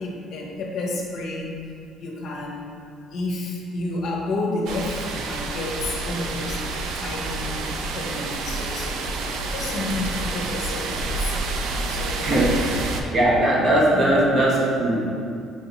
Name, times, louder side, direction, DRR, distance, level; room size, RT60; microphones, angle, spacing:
voice 1, 0.0-1.7 2.0-2.7 3.1-6.7 7.0-11.4 11.9-12.5, left 2 dB, 60° left, -1 dB, 0.6 m, -31 dB
sound 1, 4.7-13.0, right 3 dB, 75° right, 0.3 m, -28 dB
voice 2, 12.2-12.6 13.1-15.1, right 1 dB, 40° right, -4 dB, 0.8 m, -19 dB
4.8 x 2.8 x 2.7 m, 2.3 s
cardioid pair, 130°, 0 cm